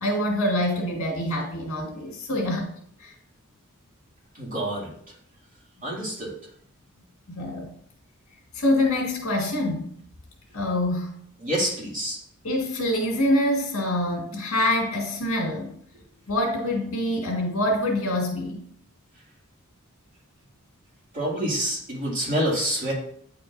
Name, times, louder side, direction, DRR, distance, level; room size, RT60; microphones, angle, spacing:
voice 1, 0.0-2.7 3.0-3.1 7.3-7.7 8.5-9.9 10.5-11.1 12.4-15.7 16.3-18.6, left 1 dB, 70° left, -1 dB, 2.0 m, -25 dB
voice 2, 4.4-4.9 5.8-6.3 11.4-12.2 21.1-22.9, right 1 dB, 40° right, -5 dB, 2.5 m, -27 dB
9.2 x 4.5 x 2.6 m, 0.64 s
head